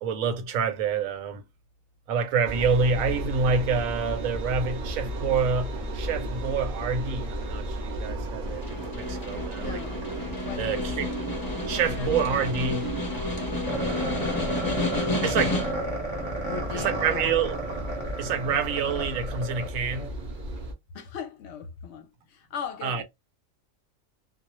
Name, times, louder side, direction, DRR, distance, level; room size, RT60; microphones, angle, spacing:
voice 1, 0.0-1.4 2.1-9.8 10.6-11.1 11.7-12.9 15.2-15.6 16.7-17.6 18.2-20.1 22.8-23.0, right 5 dB, 85° right, 1.0 m, -27 dB
Engine, 2.4-20.7, right 1 dB, 50° right, 0.6 m, -34 dB
Snare drum, 8.5-15.9, left 2 dB, 25° left, 0.6 m, -31 dB
voice 2, 9.6-10.0 10.4-10.8 12.0-12.1 13.8-14.4 15.5-15.8 16.4-17.4 20.9-23.0, left 7 dB, 65° left, 0.8 m, -39 dB
sound 1, 13.7-20.1, right 1 dB, ahead, 0.8 m, -33 dB
2.3 x 2.0 x 2.9 m
omnidirectional pair, 1.4 m